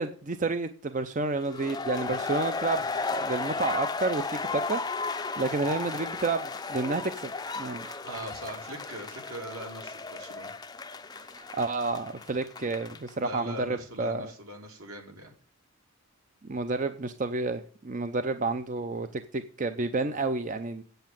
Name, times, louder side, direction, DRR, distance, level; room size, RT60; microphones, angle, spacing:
voice 1, 0.0-2.8 3.1-7.3 7.6-8.0 11.2-14.3 16.4-20.8, right 3 dB, 35° right, 0.6 m, -30 dB
sound 1, 1.5-13.1, left 4 dB, 20° left, 0.5 m, -34 dB
voice 2, 8.0-10.5 13.2-15.3, right 1 dB, 70° right, 3.2 m, -41 dB
8.3 x 7.9 x 8.9 m
head